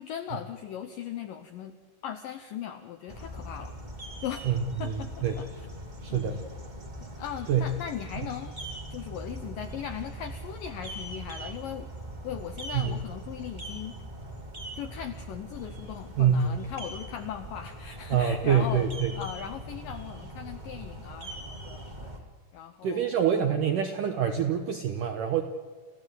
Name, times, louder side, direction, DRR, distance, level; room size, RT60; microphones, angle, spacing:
voice 1, 0.0-1.8 2.0-3.8 4.2-4.4 4.8-5.7 6.1-6.4 7.0-8.5 8.9-11.9 12.2-14.0 14.8-18.9 19.1-22.3 22.5-23.3, left 9 dB, 80° left, 8 dB, 2.0 m, -38 dB
sound 1, 3.1-22.2, right 1 dB, 45° right, 0.5 m, -41 dB
voice 2, 6.0-6.4 7.5-7.7 12.7-12.9 16.2-16.6 18.1-19.1 22.8-25.4, right 7 dB, 80° right, 6 dB, 1.9 m, -25 dB
29.5 x 15.0 x 8.0 m, 1.4 s
omnidirectional pair, 5.1 m